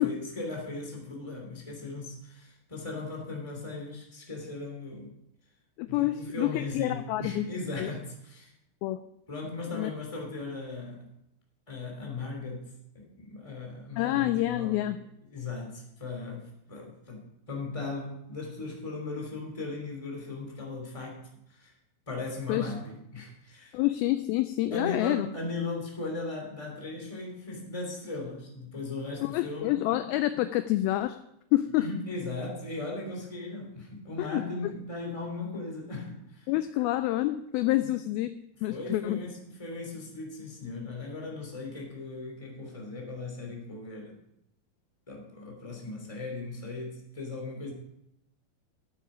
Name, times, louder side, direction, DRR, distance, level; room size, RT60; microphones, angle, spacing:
voice 1, 0.0-5.1 5.8-8.5 9.3-11.1 11.7-12.6 12.9-14.9 15.3-21.2 21.5-21.7 22.1-23.7 24.7-30.0 31.8-36.5 37.8-37.9 38.7-44.2 45.1-47.7, left 3 dB, 10° left, 0 dB, 2.3 m, -38 dB
voice 2, 5.8-7.4 7.8-7.9 8.8-9.0 9.7-9.9 14.0-15.0 22.5-22.7 23.7-25.3 29.2-31.2 31.5-31.9 34.2-34.4 36.5-38.3 38.6-39.2, left 15 dB, 85° left, 11 dB, 2.2 m, -27 dB
13.0 x 8.6 x 5.0 m, 0.80 s
omnidirectional pair, 4.7 m